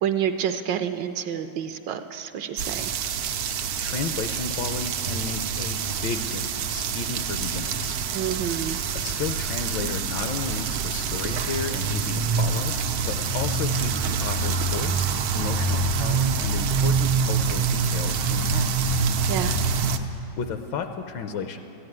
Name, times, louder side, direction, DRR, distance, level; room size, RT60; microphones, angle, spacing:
voice 1, 0.0-2.9 8.1-8.8 19.3-19.6, right 9 dB, 75° right, 8 dB, 1.1 m, -28 dB
sound 1, 2.6-20.0, right 5 dB, 90° right, 1.6 m, -26 dB
voice 2, 3.8-8.0 8.9-18.7 20.4-21.6, left 6 dB, 75° left, 7 dB, 1.3 m, -33 dB
14.5 x 9.7 x 9.3 m, 2.9 s
omnidirectional pair, 2.2 m